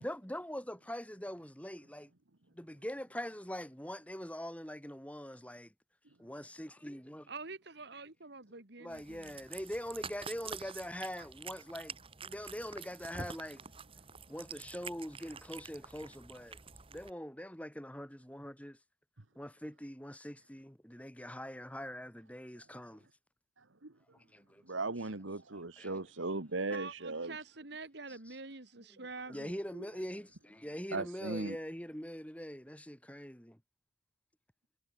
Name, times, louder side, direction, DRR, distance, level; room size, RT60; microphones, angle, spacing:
voice 1, 0.0-2.1 2.5-5.7 6.2-7.3 8.8-11.9 12.2-13.6 14.3-16.6 16.9-18.8 19.3-23.1 24.1-24.6 25.5-25.9 28.1-28.4 28.9-33.6, equal, 5° left, 5.9 m, -43 dB
voice 2, 7.3-9.4 26.7-29.6, right 3 dB, 60° right, 2.4 m, -46 dB
Cat, 8.9-17.1, right 5 dB, 30° right, 2.0 m, -48 dB
voice 3, 24.7-27.4 30.9-31.6, right 3 dB, 90° right, 1.7 m, -37 dB
head